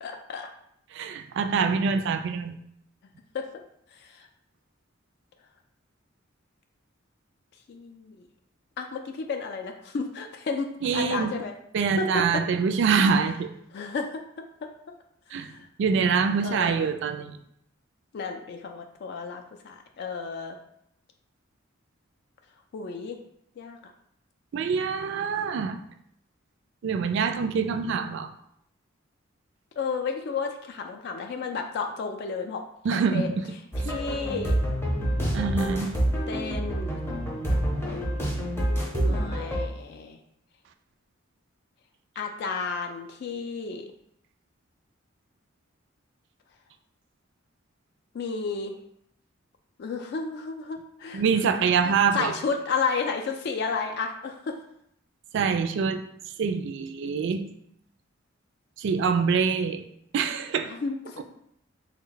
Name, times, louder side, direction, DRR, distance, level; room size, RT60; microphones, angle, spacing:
voice 1, 0.0-0.5 3.3-3.4 3.9-4.3 7.7-8.2 8.8-11.5 12.0-12.2 13.7-14.1 14.6-14.7 15.4-15.7 16.4-16.9 18.1-20.6 22.7-23.2 23.6-23.8 29.8-32.6 32.9-33.3 33.8-34.6 36.3-37.0 39.0-40.2 42.2-43.9 48.1-48.7 49.8-51.2 51.8-54.6 60.6-61.2, left 4 dB, 55° left, 4 dB, 0.3 m, -32 dB
voice 2, 0.9-2.6 10.8-11.3 11.7-13.5 15.3-15.5 15.8-17.4 24.5-25.8 26.8-28.3 32.8-33.3 35.3-35.9 38.9-39.3 51.1-52.3 55.3-56.0 56.4-57.5 58.8-59.8 60.1-60.7, right 5 dB, 60° right, 7 dB, 0.3 m, -25 dB
sound 1, 33.7-39.7, equal, 10° left, 0.6 m, -27 dB
3.4 x 2.2 x 3.8 m, 0.73 s
head